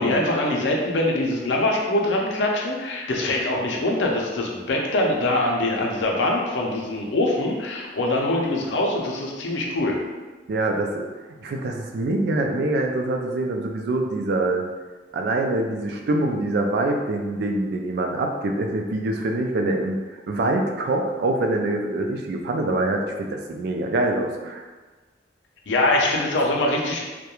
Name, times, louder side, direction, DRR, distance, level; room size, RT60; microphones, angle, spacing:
voice 1, 0.0-10.0 25.7-27.0, left 1 dB, 90° left, -1 dB, 0.5 m, -23 dB
voice 2, 10.5-11.1 11.4-14.7 15.1-20.0 20.3-24.7, right 2 dB, 60° right, 3 dB, 0.3 m, -24 dB
2.3 x 2.1 x 2.9 m, 1.3 s
head